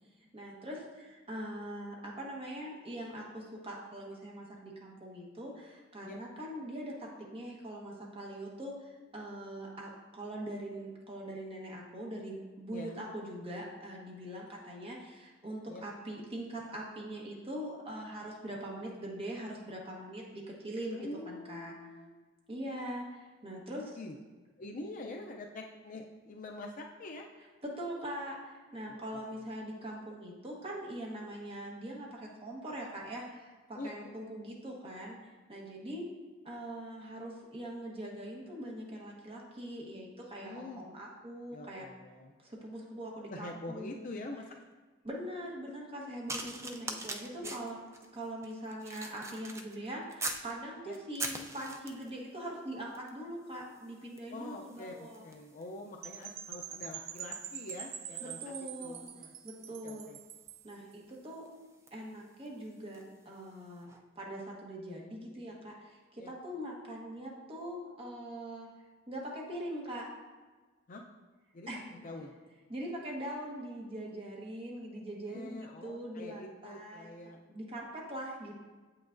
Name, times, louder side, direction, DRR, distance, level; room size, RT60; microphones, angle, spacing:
voice 1, 0.3-21.7 22.5-24.0 27.6-35.2 35.5-36.1 36.4-41.8 42.4-44.1 45.0-47.8 48.1-55.3 58.4-59.1 59.4-60.1 60.6-61.5 61.9-63.9 64.2-68.7 69.1-70.1 71.7-71.9 72.7-77.2 77.5-78.5, right 1 dB, 30° right, -3 dB, 1.2 m, -42 dB
voice 2, 12.7-13.0 15.7-15.8 20.9-22.2 23.7-24.1 24.6-27.3 28.9-29.0 29.3-29.4 33.7-34.1 40.4-40.8 41.5-42.3 43.3-44.4 47.4-47.5 50.8-51.0 54.3-58.5 58.8-59.3 59.8-60.2 66.2-66.3 70.9-71.0 71.5-72.3 75.3-77.4, left 2 dB, 40° left, 2 dB, 0.5 m, -45 dB
sound 1, 46.3-50.5 50.9-52.2 53.0-53.2 53.5-63.2 63.9-64.0, right 2 dB, 15° right, 0.4 m, -44 dB
Percussion / Wind chime, 56.0-60.7, right 9 dB, 85° right, 0.4 m, -44 dB
7.8 x 5.8 x 2.6 m, 1.3 s
head